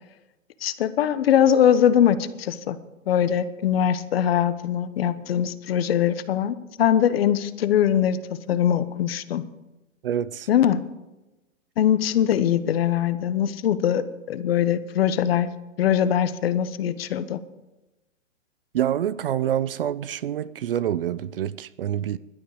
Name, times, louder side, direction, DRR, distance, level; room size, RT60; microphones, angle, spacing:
voice 1, 0.6-2.8 3.1-8.2 8.5-9.4 10.5-10.8 11.8-15.5 15.8-17.4, left 9 dB, 50° left, 1.0 m, -22 dB
voice 2, 10.0-10.5 18.7-22.2, right 10 dB, 45° right, 0.5 m, -26 dB
16.5 x 12.0 x 4.8 m
hypercardioid pair, 155°, 38 cm